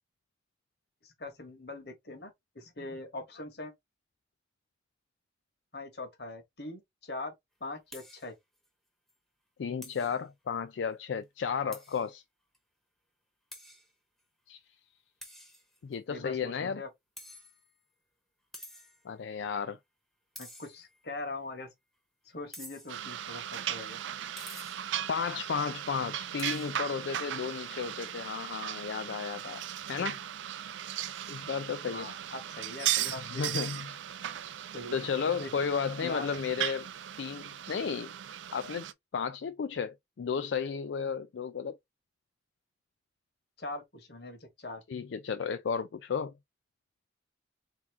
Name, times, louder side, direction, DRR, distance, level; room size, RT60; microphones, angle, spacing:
voice 1, 1.0-3.7 5.7-7.3 7.6-8.3 16.1-16.9 20.4-21.7 22.2-24.0 31.9-33.4 34.7-34.9 35.4-35.5 36.0-36.3 43.6-44.8, left 2 dB, 60° left, 1.3 m, -42 dB
sound 1, 7.9-8.3 8.6-8.7 9.1-9.2 9.8-10.2 11.7-12.1 12.5-12.6 13.5-13.9 15.2-15.9 17.2-17.9 18.5-19.1 20.4-21.1 22.5-23.1 24.4-24.9 26.4-26.8, left 1 dB, ahead, 0.8 m, -49 dB
voice 2, 9.6-12.2 14.5-14.6 15.8-16.8 19.0-19.8 25.1-29.6 29.9-30.2 31.3-32.1 33.2-34.0 34.9-36.9 37.2-38.1 38.5-38.9 39.1-41.8 44.9-46.3, left 6 dB, 80° left, 0.4 m, -33 dB
sound 2, 22.9-38.9, right 11 dB, 85° right, 0.4 m, -37 dB
3.6 x 3.0 x 3.4 m
head